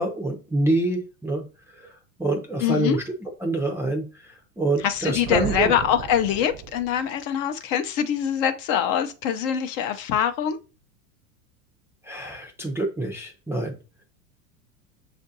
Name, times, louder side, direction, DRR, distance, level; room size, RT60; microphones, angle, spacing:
voice 1, 0.0-1.4 1.7-1.9 2.2-3.0 3.4-5.7 12.0-13.8, right 2 dB, 5° right, 0.5 m, -26 dB
voice 2, 2.6-3.0 4.8-10.6, left 9 dB, 45° left, 0.6 m, -24 dB
Thunder, 4.8-7.2, right 8 dB, 50° right, 0.7 m, -35 dB
6.3 x 2.5 x 2.7 m
hypercardioid pair, 100°, 47 cm